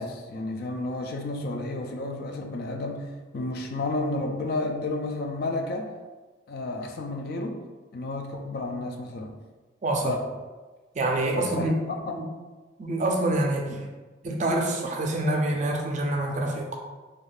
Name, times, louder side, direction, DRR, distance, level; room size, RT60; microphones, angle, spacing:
voice 1, 0.0-5.9 6.5-7.6 7.9-9.4 10.0-10.3 11.3-12.2 13.7-13.8, left 2 dB, 50° left, 3 dB, 0.3 m, -31 dB
voice 2, 9.8-10.1 10.9-11.8 12.2-12.3 12.8-13.8 14.2-16.8, right 1 dB, 40° right, 1 dB, 0.4 m, -26 dB
2.4 x 2.3 x 3.3 m, 1.3 s
head